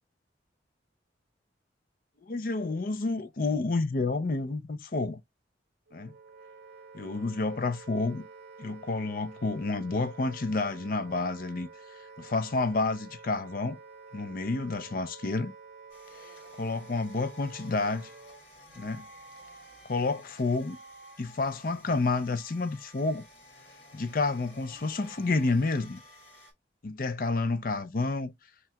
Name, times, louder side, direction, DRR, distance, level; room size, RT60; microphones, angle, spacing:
voice 1, 2.3-5.2 5.9-6.1 6.9-8.2 8.6-11.7 12.2-13.8 14.1-15.5 16.2-16.3 16.6-18.1 18.8-19.1 19.8-20.8 21.2-23.3 23.9-26.0 26.8-28.3, left 3 dB, 50° left, 0.5 m, -29 dB
Wind instrument woodwind instrument, 5.9-18.5, right 4 dB, 70° right, 1.3 m, -50 dB
sound 1, 15.9-26.5, equal, 80° left, 2.6 m, -52 dB
5.7 x 3.0 x 2.2 m
head